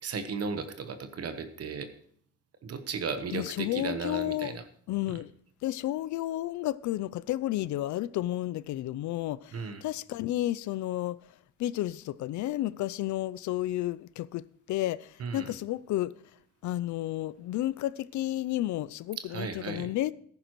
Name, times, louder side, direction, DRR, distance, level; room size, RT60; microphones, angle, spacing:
voice 1, 0.0-1.9 2.6-4.6 5.1-5.2 9.5-9.8 15.2-15.5 19.2-19.9, right 5 dB, 55° right, 1.1 m, -35 dB
voice 2, 3.3-4.6 4.9-5.3 5.6-11.2 11.6-16.1 16.6-20.1, left 14 dB, 75° left, 0.5 m, -32 dB
14.0 x 10.5 x 3.1 m
cardioid pair, 90°, 30 cm